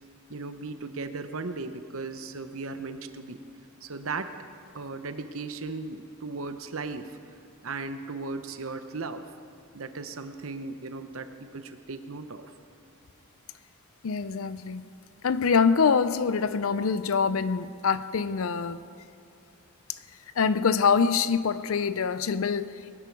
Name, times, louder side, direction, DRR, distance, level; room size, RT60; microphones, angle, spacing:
voice 1, 0.3-3.4 3.8-4.4 4.7-7.2 7.6-9.3 9.7-12.5, right 3 dB, 65° right, 0.9 m, -36 dB
voice 2, 14.0-14.9 15.2-18.8 20.4-23.0, left 5 dB, 65° left, 0.5 m, -25 dB
21.0 x 12.0 x 4.7 m
head